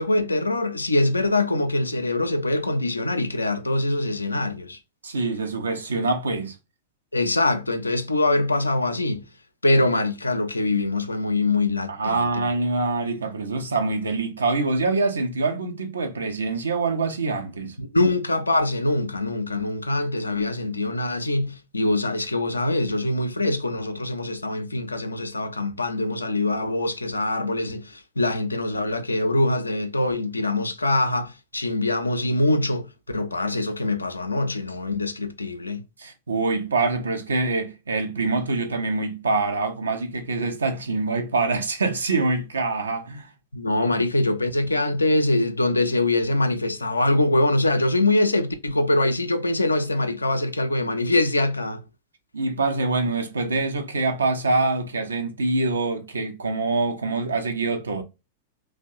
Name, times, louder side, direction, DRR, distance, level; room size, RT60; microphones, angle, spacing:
voice 1, 0.0-4.8 7.1-9.2 9.6-12.5 17.8-35.8 43.5-51.8, left 2 dB, 80° left, 0.4 m, -23 dB
voice 2, 5.0-6.6 11.9-17.7 36.0-43.3 43.8-43.9 52.3-58.0, right 3 dB, 70° right, 0.5 m, -25 dB
2.9 x 2.0 x 2.5 m
figure-of-eight pair, 95°, 0 cm